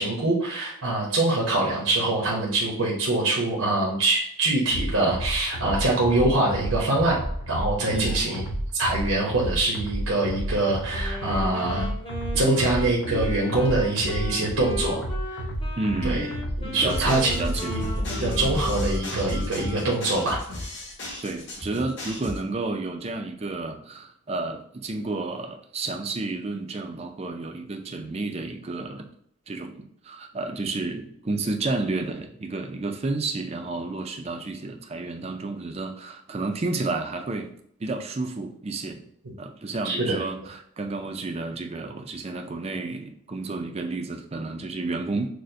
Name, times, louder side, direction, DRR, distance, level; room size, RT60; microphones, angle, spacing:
voice 1, 0.0-8.4 8.7-11.9 12.3-15.0 16.0-16.2 16.6-17.3 17.7-17.8 18.1-20.4 39.8-40.2, right 2 dB, 85° right, -3 dB, 0.9 m, -24 dB
sound 1, 4.7-19.7, equal, 75° left, 0.8 m, -31 dB
voice 2, 7.9-8.2 12.5-12.6 15.8-16.3 16.8-17.7 21.2-29.1 29.5-37.5 37.8-39.0 39.4-45.3, right 3 dB, 30° right, 5 dB, 0.4 m, -31 dB
Wind instrument woodwind instrument, 10.9-19.1, left 1 dB, 25° left, 0.9 m, -37 dB
sound 2, 16.9-22.4, left 1 dB, 55° left, 1.4 m, -35 dB
6.3 x 2.1 x 2.7 m, 0.68 s
head